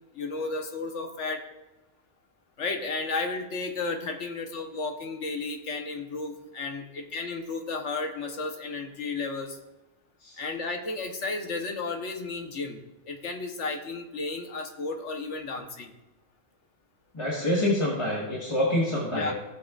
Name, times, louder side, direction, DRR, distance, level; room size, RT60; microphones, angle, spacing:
voice 1, 0.1-1.4 2.6-9.6 10.4-15.9 19.1-19.3, left 3 dB, 80° left, 4 dB, 1.4 m, -33 dB
voice 2, 17.1-19.3, left 1 dB, 25° left, -5 dB, 1.6 m, -26 dB
15.5 x 7.6 x 2.5 m, 1.1 s
omnidirectional pair, 1.2 m